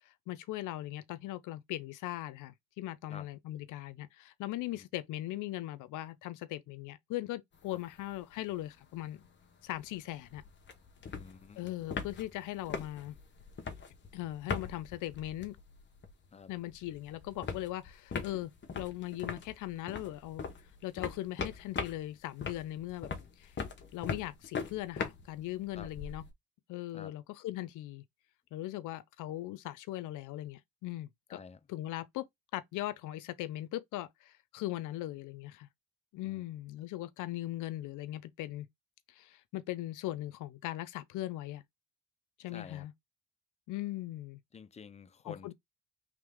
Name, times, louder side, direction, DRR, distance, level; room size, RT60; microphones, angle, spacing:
voice 1, 0.3-9.2 9.6-10.4 11.6-13.2 14.1-15.6 16.5-20.4 20.8-23.1 23.4-23.5 23.9-26.2 26.7-28.0 28.5-31.4 31.7-32.3 32.5-35.7 36.1-38.7 39.1-41.6 42.4-42.9 43.7-44.4 45.2-45.5, left 15 dB, 90° left, 0.6 m, -39 dB
sound 1, 7.5-8.2 8.5-8.6 8.8-16.3 16.5-26.3, left 5 dB, 35° left, 1.1 m, -41 dB
voice 2, 11.1-11.7 16.3-16.5 25.7-25.9 26.9-27.1 31.3-31.7 36.2-36.4 42.5-42.9 44.5-45.5, left 6 dB, 20° left, 0.5 m, -49 dB
3.6 x 3.3 x 3.5 m
cardioid pair, 90°, 30 cm